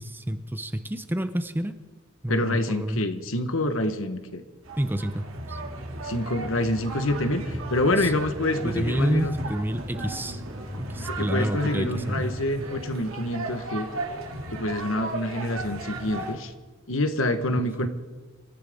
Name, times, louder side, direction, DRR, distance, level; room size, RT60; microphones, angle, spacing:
voice 1, 0.0-1.8 2.2-3.0 4.8-5.6 8.0-8.1 8.6-10.4 10.8-12.3 17.8-17.9, right 1 dB, 10° right, 10 dB, 0.7 m, -28 dB
voice 2, 2.3-4.4 6.0-9.4 11.1-13.9 14.5-16.5 16.9-17.9, left 1 dB, 75° left, 8 dB, 1.4 m, -27 dB
sound 1, 4.6-16.3, right 1 dB, 80° right, 2.8 m, -35 dB
26.5 x 13.5 x 3.8 m, 1.3 s
head